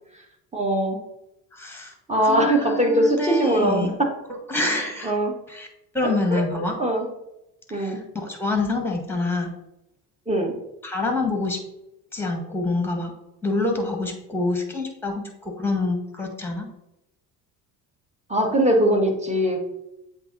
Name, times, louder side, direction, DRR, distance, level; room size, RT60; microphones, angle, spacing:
voice 1, 0.5-1.0 2.1-4.1 5.0-5.3 6.0-6.4 6.8-7.1 7.7-8.0 10.3-10.5 18.3-19.6, right 1 dB, 15° right, 1 dB, 1.6 m, -21 dB
voice 2, 1.5-1.9 2.2-4.0 4.5-5.1 5.5-5.7 5.9-6.8 7.7-9.5 10.8-11.6 12.1-13.1 13.4-16.7, left 2 dB, 5° left, 3 dB, 1.6 m, -26 dB
7.7 x 3.0 x 4.0 m, 0.87 s
hypercardioid pair, 60°, 50 cm